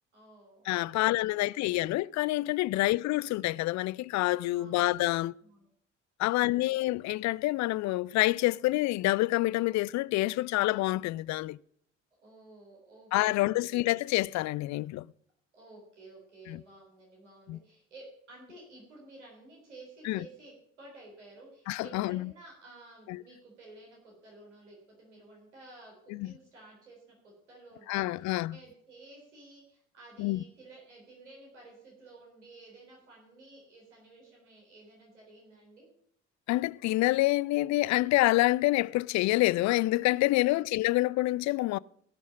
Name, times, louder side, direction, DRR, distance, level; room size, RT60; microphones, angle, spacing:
voice 1, 0.1-1.7 2.7-2.9 4.5-4.9 5.4-5.7 6.2-6.7 12.2-14.0 15.5-35.9 40.4-40.6, right 2 dB, 85° right, 3.7 m, -53 dB
voice 2, 0.7-5.3 6.2-11.6 13.1-15.1 16.5-16.6 17.5-17.6 20.1-20.2 21.7-22.3 23.1-23.2 26.1-26.3 27.9-28.6 30.2-30.4 36.5-41.8, left 18 dB, 55° left, 0.4 m, -27 dB
17.5 x 6.3 x 7.1 m
figure-of-eight pair, 50°, 34 cm